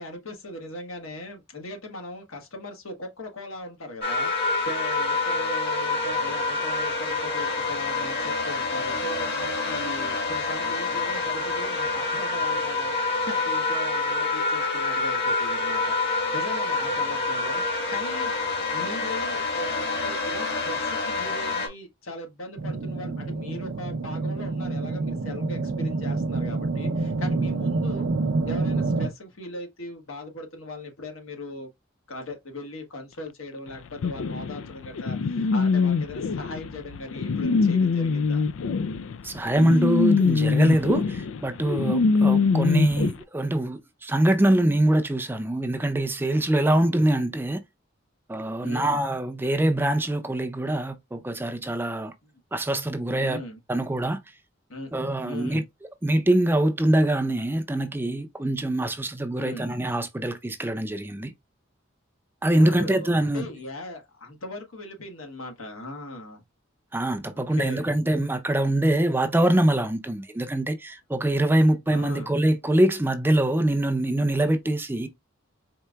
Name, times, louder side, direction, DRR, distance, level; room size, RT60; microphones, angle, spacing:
voice 1, 0.0-18.3 18.7-28.1 28.4-31.7 32.1-38.4 42.1-42.5 46.7-46.9 48.6-49.0 52.2-52.3 53.2-53.6 54.7-55.7 59.4-59.7 62.5-66.4 67.3-67.9 71.9-72.4, left 1 dB, 90° left, 1.4 m, -39 dB
sound 1, 4.0-21.7, left 3 dB, 55° left, 1.7 m, -27 dB
sound 2, 22.6-29.1, right 3 dB, 65° right, 0.6 m, -27 dB
sound 3, 34.0-43.1, left 4 dB, 75° left, 0.4 m, -23 dB
voice 2, 39.2-47.6 48.3-52.1 52.5-53.4 53.7-54.2 54.9-55.6 56.0-61.3 62.4-63.5 66.9-75.1, right 1 dB, 10° right, 0.5 m, -24 dB
4.5 x 3.7 x 2.2 m
head